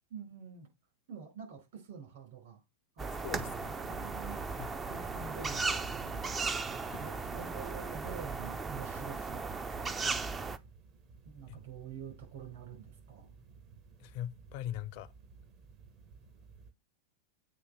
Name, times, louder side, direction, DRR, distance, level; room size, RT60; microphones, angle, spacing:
voice 1, 0.1-0.7 1.1-2.6 2.9-3.2 3.4-4.4 4.9-6.3 7.0-9.4 9.7-10.2 11.2-13.3, right 6 dB, 55° right, 4.7 m, -47 dB
sound 1, 3.0-10.6, right 4 dB, 15° right, 0.5 m, -36 dB
voice 2, 3.2-3.7 4.6-4.7 6.9-7.0 11.5-11.6 14.0-15.1, left 11 dB, 45° left, 0.5 m, -41 dB
sound 2, 10.5-16.7, right 5 dB, 40° right, 1.0 m, -56 dB
8.3 x 2.8 x 5.5 m
figure-of-eight pair, 90°, 0 cm